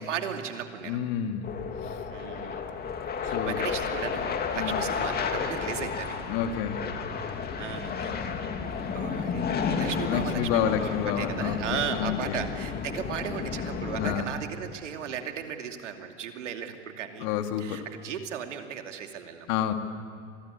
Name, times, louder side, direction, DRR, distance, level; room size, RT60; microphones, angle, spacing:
voice 1, 0.0-1.0 2.1-2.7 3.2-6.2 7.6-8.5 8.9-17.3 17.6-19.7, right 8 dB, 85° right, 5 dB, 2.7 m, -36 dB
voice 2, 0.8-1.5 1.8-2.0 2.4-2.5 3.3-3.6 4.5-4.8 6.3-6.8 10.0-12.4 14.0-14.3 17.2-17.8 19.5-19.7, left 9 dB, 55° left, 6 dB, 2.5 m, -29 dB
sound 1, 1.4-14.2, left 6 dB, 25° left, 2.6 m, -32 dB
26.0 x 20.0 x 9.8 m, 2.4 s
hypercardioid pair, 110°, 35 cm